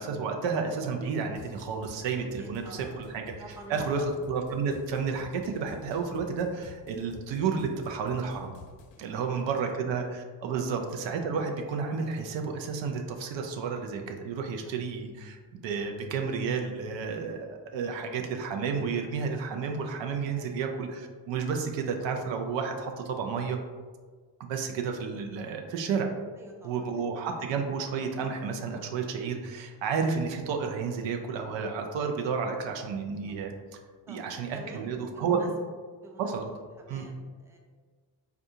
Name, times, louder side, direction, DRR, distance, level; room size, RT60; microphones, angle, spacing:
voice 1, 0.0-3.3 3.7-8.5 9.0-23.6 24.4-26.1 26.6-33.5 34.1-35.4 36.2-36.5 36.9-37.0, right 5 dB, 75° right, 3 dB, 0.5 m, -31 dB
sound 1, 1.3-9.0, left 4 dB, 75° left, 0.5 m, -50 dB
voice 2, 2.2-3.0 3.4-4.0 9.0-9.6 10.5-10.6 14.6-14.7 20.4-20.6 26.4-26.9 27.2-27.3 33.3-33.4 34.1-34.2 34.5-35.5 36.0-36.3 36.8-37.6, right 1 dB, 5° right, 1 dB, 0.5 m, -47 dB
3.6 x 2.3 x 2.7 m, 1.5 s
supercardioid pair, 60°, 45 cm